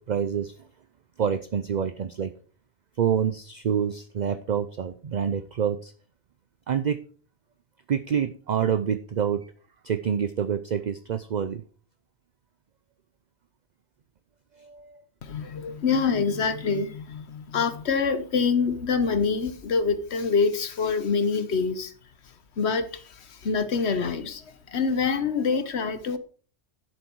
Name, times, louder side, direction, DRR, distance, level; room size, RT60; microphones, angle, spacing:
voice 1, 0.1-0.5 1.2-2.3 3.0-5.9 6.7-7.0 7.9-9.5 9.8-11.6 14.6-15.0, right 8 dB, 50° right, 0.6 m, -27 dB
voice 2, 15.2-21.9 22.2-26.2, left 5 dB, 70° left, 1.3 m, -26 dB
10.5 x 7.9 x 4.6 m
omnidirectional pair, 1.2 m